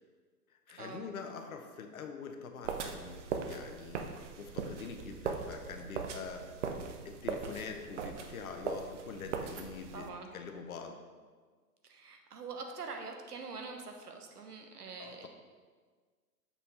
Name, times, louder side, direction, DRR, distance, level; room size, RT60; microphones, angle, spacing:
voice 1, 0.7-4.0 4.4-6.4 7.0-10.9 15.0-15.3, left 5 dB, 65° left, 5 dB, 0.9 m, -44 dB
sound 1, 2.6-10.1, right 5 dB, 50° right, 0.7 m, -40 dB
voice 2, 9.9-10.3 11.8-15.3, right 4 dB, 70° right, 4 dB, 1.1 m, -44 dB
7.3 x 4.2 x 4.2 m, 1.5 s
figure-of-eight pair, 120°, 47 cm